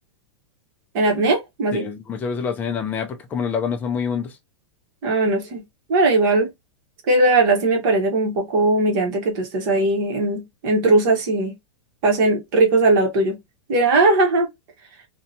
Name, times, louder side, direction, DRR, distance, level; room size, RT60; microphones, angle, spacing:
voice 1, 0.9-1.9 5.0-5.6 5.9-6.5 7.1-11.5 12.0-13.4 13.7-14.5, right 2 dB, 45° right, 1.0 m, -19 dB
voice 2, 1.7-4.3, left 6 dB, 10° left, 0.3 m, -26 dB
2.6 x 2.2 x 2.6 m
supercardioid pair, 160°, 15 cm